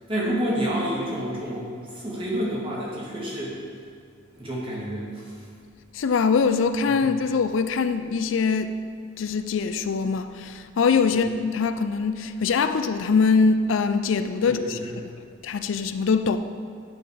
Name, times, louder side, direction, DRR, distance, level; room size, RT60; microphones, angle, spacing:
voice 1, 0.1-3.6 4.3-5.3 11.1-11.2 14.4-14.9, equal, 30° right, 1.8 m, -29 dB
voice 2, 5.9-8.8 9.2-14.8 15.1-15.2 15.4-16.4, left 5 dB, 75° left, 0.4 m, -23 dB
10.5 x 3.9 x 5.0 m
head